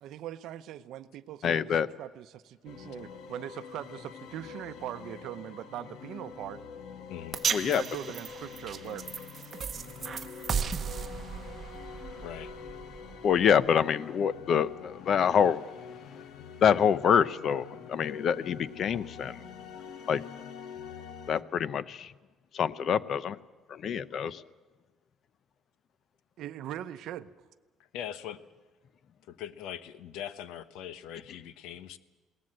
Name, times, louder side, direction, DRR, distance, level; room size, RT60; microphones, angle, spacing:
voice 1, 0.0-6.6 7.7-9.1 26.4-27.3, right 12 dB, 60° right, 12 dB, 0.7 m, -41 dB
voice 2, 1.4-1.9 7.5-7.8 13.2-15.6 16.6-19.4 20.1-20.2 21.3-22.1 22.5-23.4 23.7-24.4, left 8 dB, 40° left, 17 dB, 0.6 m, -26 dB
sound 1, 2.7-21.4, left 7 dB, 60° left, 1.2 m, -45 dB
voice 3, 7.1-7.4 12.2-12.5 27.9-28.4 29.3-32.0, left 10 dB, 80° left, 13 dB, 1.0 m, -41 dB
sound 2, 7.3-13.7, right 7 dB, 30° right, 0.9 m, -36 dB
21.5 x 17.5 x 7.6 m, 1.3 s
cardioid pair, 165°, 0 cm